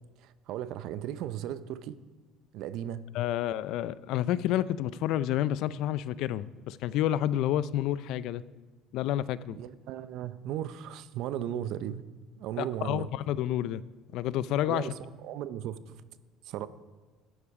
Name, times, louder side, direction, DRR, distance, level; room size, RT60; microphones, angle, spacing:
voice 1, 0.2-2.0 2.5-3.0 9.5-12.1 12.4-13.1 14.7-14.9 15.2-16.0 16.4-16.7, right 11 dB, 70° right, 0.6 m, -36 dB
voice 2, 3.1-8.4 8.9-9.6 12.6-13.8 14.1-14.9, left 12 dB, 70° left, 0.4 m, -29 dB
12.0 x 9.7 x 4.8 m
cardioid pair, 110°, 0 cm